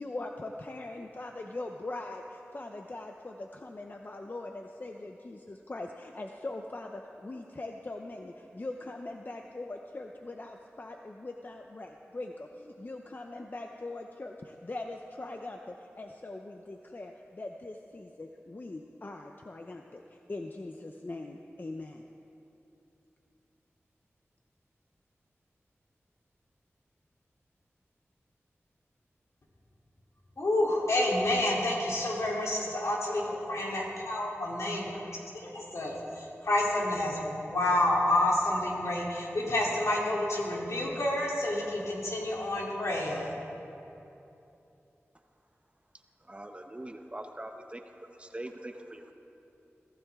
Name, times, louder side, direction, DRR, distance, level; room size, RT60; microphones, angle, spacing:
voice 1, 0.0-22.0, left 2 dB, 40° left, 3 dB, 0.7 m, -41 dB
voice 2, 30.4-35.0 35.4-43.4, left 1 dB, 80° left, -4 dB, 3.1 m, -29 dB
voice 3, 46.3-47.8 48.2-49.1, right 1 dB, 25° right, 5 dB, 0.9 m, -42 dB
22.5 x 15.0 x 3.6 m, 2.9 s
wide cardioid pair, 90°, 5 cm